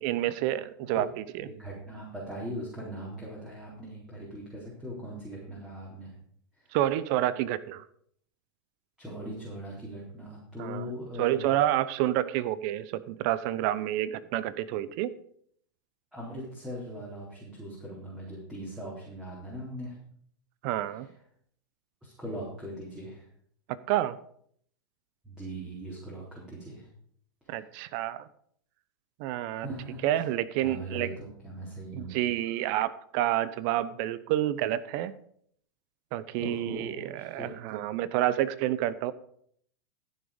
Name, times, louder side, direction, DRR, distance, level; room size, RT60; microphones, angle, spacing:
voice 1, 0.0-1.5 6.7-7.8 10.6-10.9 11.2-15.2 20.6-21.1 23.9-24.2 27.5-28.3 29.2-29.7 30.0-31.1 31.9-35.1 36.1-39.1, right 13 dB, 55° right, 17 dB, 0.7 m, -29 dB
voice 2, 1.4-6.2 6.6-6.8 9.0-11.5 16.1-19.9 22.0-23.3 25.2-26.9 27.4-27.6 29.5-30.2 30.6-32.1 36.4-37.5, right 1 dB, 5° right, -6 dB, 4.1 m, -40 dB
14.5 x 6.5 x 5.2 m, 0.64 s
hypercardioid pair, 110°, 12 cm